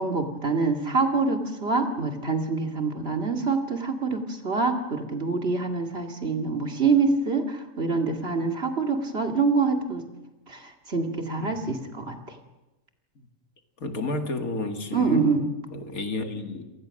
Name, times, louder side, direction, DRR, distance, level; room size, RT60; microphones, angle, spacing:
voice 1, 0.0-10.0 10.5-12.4 14.9-15.4, right 4 dB, 45° right, 4 dB, 2.4 m, -25 dB
voice 2, 13.8-15.2 15.7-16.6, left 2 dB, 75° left, 5 dB, 2.5 m, -31 dB
27.5 x 18.5 x 6.5 m, 1.1 s
omnidirectional pair, 1.5 m